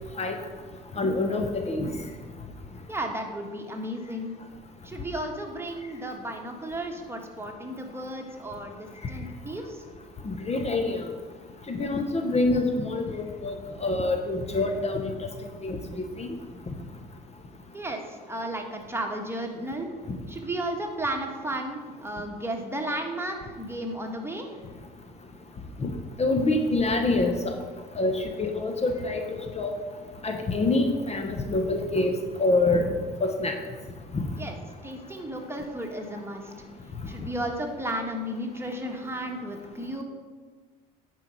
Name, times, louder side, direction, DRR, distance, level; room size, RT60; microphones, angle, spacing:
voice 1, 1.0-1.9 10.2-11.0 11.7-15.1 15.6-16.3 16.7-16.8 25.8-25.9 26.2-27.6 28.0-29.2 29.5-29.8 30.2-32.1 32.4-32.9 33.2-33.5 34.1-34.3, left 2 dB, 35° left, 5 dB, 1.0 m, -26 dB
voice 2, 2.9-4.3 4.8-9.8 17.7-19.9 20.3-24.5 34.4-34.5 34.8-36.5 37.1-40.0, right 1 dB, 15° right, 2 dB, 1.6 m, -33 dB
9.7 x 4.7 x 5.3 m, 1.5 s
supercardioid pair, 70°, 19 cm